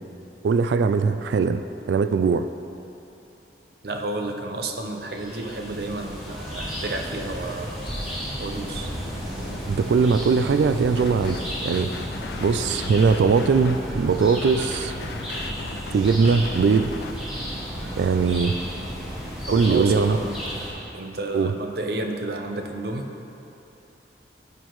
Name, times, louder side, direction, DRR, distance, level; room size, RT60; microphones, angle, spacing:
voice 1, 0.4-1.6 1.9-2.5 9.7-11.9 12.4-14.9 15.9-16.9 18.0-18.6 19.5-20.2 21.3-21.5, right 5 dB, 75° right, 10 dB, 0.3 m, -20 dB
voice 2, 3.8-7.8 8.4-8.9 19.4-20.4 20.9-23.1, right 2 dB, 60° right, 3 dB, 0.7 m, -31 dB
sound 1, 5.0-20.7, equal, 5° right, 1.9 m, -33 dB
sound 2, 7.9-15.2, equal, 30° left, 1.3 m, -39 dB
sound 3, 11.0-11.5 11.7-17.1, left 5 dB, 70° left, 0.3 m, -38 dB
10.5 x 9.1 x 3.1 m, 2.9 s
head